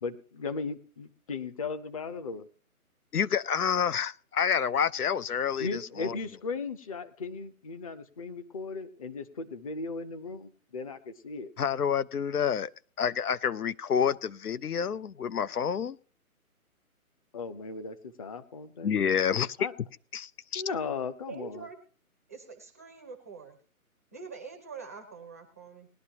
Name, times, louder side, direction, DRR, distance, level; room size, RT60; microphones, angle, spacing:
voice 1, 0.0-2.5 5.6-11.5 17.3-19.0 19.6-19.7 20.5-21.7, left 4 dB, 25° left, 10 dB, 0.7 m, -37 dB
voice 2, 3.1-6.2 11.6-12.7 13.0-16.0 18.8-19.6 20.1-20.6, left 7 dB, 85° left, 17 dB, 0.8 m, -28 dB
voice 3, 21.3-21.8 22.3-23.6 24.1-25.9, right 5 dB, 10° right, 3 dB, 0.5 m, -44 dB
19.5 x 11.0 x 2.9 m, 0.40 s
hypercardioid pair, 150°, 44 cm